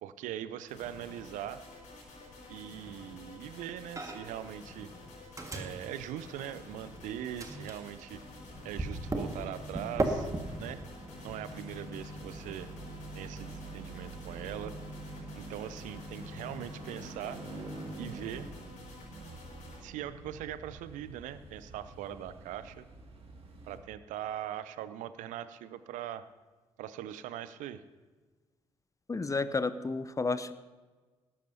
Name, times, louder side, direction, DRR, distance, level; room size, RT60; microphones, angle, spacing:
voice 1, 0.0-1.6 2.5-4.9 5.5-8.2 8.6-10.3 10.6-10.8 11.2-12.7 13.1-14.7 15.4-17.4 18.0-18.5 19.7-22.9 23.7-26.3 26.8-27.8, right 11 dB, 60° right, 14 dB, 0.6 m, -41 dB
sound 1, 0.7-19.8, left 2 dB, 60° left, 5.2 m, -51 dB
Microwave oven, 4.0-4.4 4.7-7.0 7.4-18.4, right 2 dB, 20° right, 1.9 m, -40 dB
sound 2, 6.8-23.8, right 2 dB, 40° right, 2.3 m, -51 dB
voice 2, 29.1-30.5, left 3 dB, 20° left, 14 dB, 0.8 m, -31 dB
19.0 x 13.5 x 2.8 m, 1.3 s
figure-of-eight pair, 40°, 14 cm